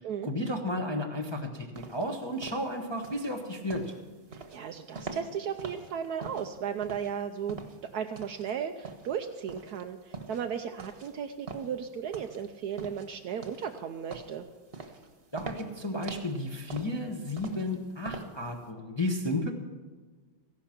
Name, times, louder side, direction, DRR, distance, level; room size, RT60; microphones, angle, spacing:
voice 1, 0.2-3.8 15.3-19.5, left 1 dB, 25° left, 1 dB, 0.6 m, -33 dB
sound 1, 1.8-18.7, right 4 dB, 35° right, 1.2 m, -44 dB
voice 2, 4.3-14.4, right 8 dB, 80° right, 6 dB, 0.8 m, -35 dB
15.0 x 11.5 x 5.9 m, 1.4 s
omnidirectional pair, 2.4 m